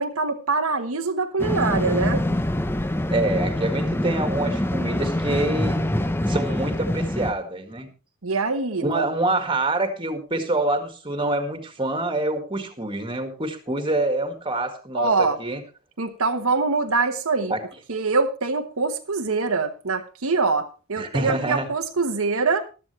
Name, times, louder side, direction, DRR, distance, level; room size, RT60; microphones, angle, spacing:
voice 1, 0.0-2.2 8.2-9.1 14.9-15.4 16.0-17.5 17.9-22.6, right 4 dB, 75° right, 5 dB, 1.1 m, -24 dB
sound 1, 1.4-7.3, left 1 dB, 10° left, 0.7 m, -25 dB
voice 2, 3.1-5.8 6.3-7.9 8.8-15.6 17.5-17.6 21.0-21.7, right 2 dB, 25° right, 7 dB, 1.9 m, -26 dB
15.0 x 12.5 x 3.2 m, 0.33 s
head